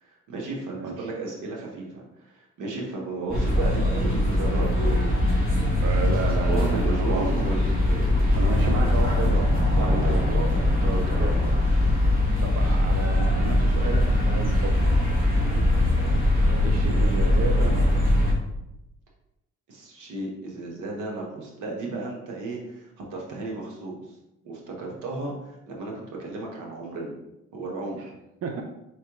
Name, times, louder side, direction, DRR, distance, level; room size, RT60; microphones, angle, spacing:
voice 1, 0.0-5.8 6.5-8.9 9.7-10.2 10.5-11.5 15.3-15.7 19.7-24.1 24.4-27.1 27.5-28.0, right 2 dB, 85° right, -1 dB, 1.2 m, -34 dB
voice 2, 0.7-1.1 5.8-7.4 8.3-9.5 9.8-10.5 11.1-11.3 12.4-14.9 16.6-18.0 28.4-28.6, right 4 dB, 55° right, 2 dB, 0.6 m, -32 dB
sound 1, 3.3-18.3, left 1 dB, 30° right, 1.5 m, -22 dB
sound 2, 9.5-15.0, equal, 15° left, 0.4 m, -38 dB
4.5 x 3.2 x 3.0 m, 0.89 s
cardioid pair, 90°, 30 cm